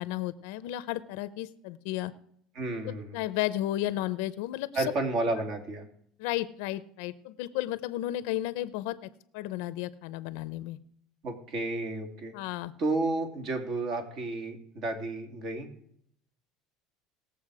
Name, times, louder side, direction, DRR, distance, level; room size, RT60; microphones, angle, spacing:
voice 1, 0.0-2.1 2.8-4.8 6.2-9.0 9.3-10.8 12.3-12.7, left 15 dB, 80° left, 14 dB, 0.7 m, -33 dB
voice 2, 2.5-3.2 4.7-5.9 11.2-12.3 12.8-15.7, right 2 dB, 50° right, 4 dB, 2.7 m, -31 dB
19.5 x 7.2 x 4.9 m, 0.68 s
cardioid pair, 145°, 0 cm